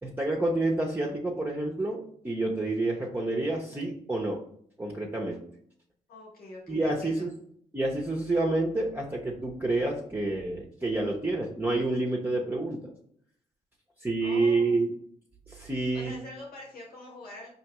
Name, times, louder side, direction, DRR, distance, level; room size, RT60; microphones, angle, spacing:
voice 1, 0.0-4.4 4.8-5.4 6.7-7.3 7.7-12.9 14.0-14.9 15.5-16.1, right 2 dB, 10° right, -1 dB, 0.8 m, -28 dB
voice 2, 6.1-7.3 14.2-14.8 15.9-17.5, left 2 dB, 70° left, -2 dB, 1.3 m, -45 dB
4.3 x 2.8 x 3.0 m, 0.64 s
supercardioid pair, 55°, 16 cm